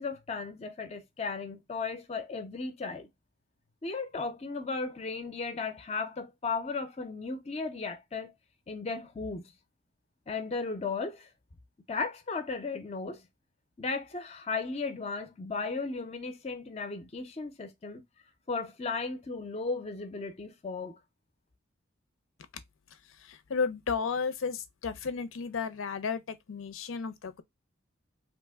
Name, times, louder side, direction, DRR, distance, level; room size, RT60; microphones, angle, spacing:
voice 1, 0.0-3.1 3.8-8.3 8.7-9.4 10.3-11.3 11.9-13.2 13.8-18.0 18.5-21.0, left 4 dB, 30° left, 0.4 m, -35 dB
voice 2, 22.9-27.4, left 5 dB, 85° left, 0.5 m, -33 dB
3.0 x 2.1 x 3.3 m
head